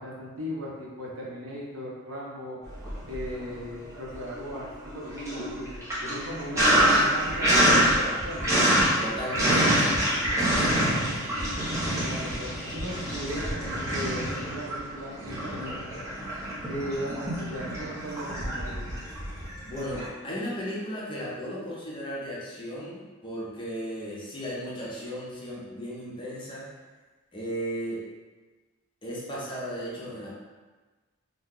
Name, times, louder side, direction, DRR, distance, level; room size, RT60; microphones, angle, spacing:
voice 1, 0.0-2.6 3.1-8.5 12.0-16.0 16.6-18.8, equal, 70° right, -5 dB, 0.8 m, -37 dB
Sink (filling or washing), 2.7-3.6 3.9-20.1, right 1 dB, 15° right, 0.7 m, -26 dB
voice 2, 6.5-6.9 9.0-11.2 19.6-26.7 27.3-28.0 29.0-30.3, equal, 25° left, -6 dB, 0.6 m, -35 dB
2.7 x 2.2 x 3.7 m, 1.3 s
head